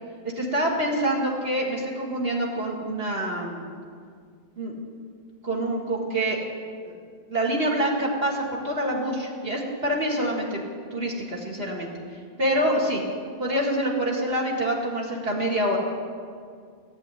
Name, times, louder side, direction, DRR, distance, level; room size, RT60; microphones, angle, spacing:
voice 1, 0.4-3.6 4.6-4.7 5.4-6.4 7.3-10.6 10.9-11.9 12.4-13.0 13.4-15.8, right 1 dB, 70° right, -3 dB, 2.3 m, -26 dB
15.5 x 7.6 x 9.8 m, 2.1 s
omnidirectional pair, 1.1 m